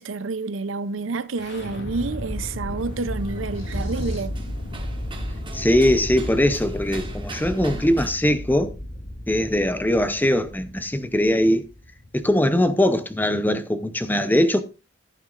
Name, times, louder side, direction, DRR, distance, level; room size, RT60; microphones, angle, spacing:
voice 1, 0.0-4.3, right 3 dB, 80° right, 0.6 m, -29 dB
sound 1, 1.4-13.2, left 1 dB, 65° left, 3.1 m, -34 dB
sound 2, 2.8-8.1, right 2 dB, 25° right, 1.6 m, -42 dB
sound 3, 3.5-4.4, equal, 90° left, 6.8 m, -31 dB
voice 2, 5.5-8.7 9.3-11.6 12.1-14.6, left 1 dB, 10° left, 0.7 m, -21 dB
14.5 x 9.1 x 2.5 m
head